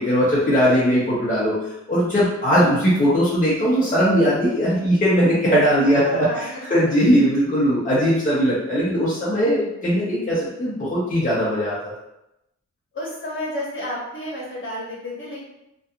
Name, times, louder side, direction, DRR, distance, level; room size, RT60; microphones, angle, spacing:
voice 1, 0.0-1.5 1.9-11.8, equal, 25° left, -9 dB, 0.8 m, -19 dB
voice 2, 5.8-7.0 12.9-15.5, left 1 dB, 45° left, -5 dB, 1.1 m, -31 dB
2.7 x 2.4 x 2.4 m, 0.88 s
cardioid pair, 65°, 29 cm